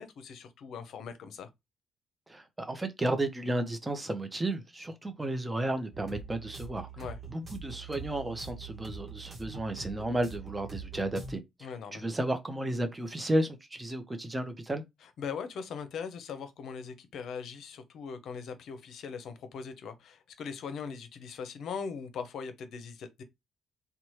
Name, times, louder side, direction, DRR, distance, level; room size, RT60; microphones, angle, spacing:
voice 1, 0.0-1.5 7.0-7.2 11.6-12.0 15.0-23.2, left 6 dB, 70° left, 0.6 m, -40 dB
voice 2, 2.3-6.9 7.3-11.4 11.9-14.8, right 1 dB, 20° right, 0.6 m, -33 dB
sound 1, 5.9-11.4, right 4 dB, 40° right, 1.1 m, -44 dB
2.8 x 2.2 x 3.1 m
cardioid pair, 70°, 0 cm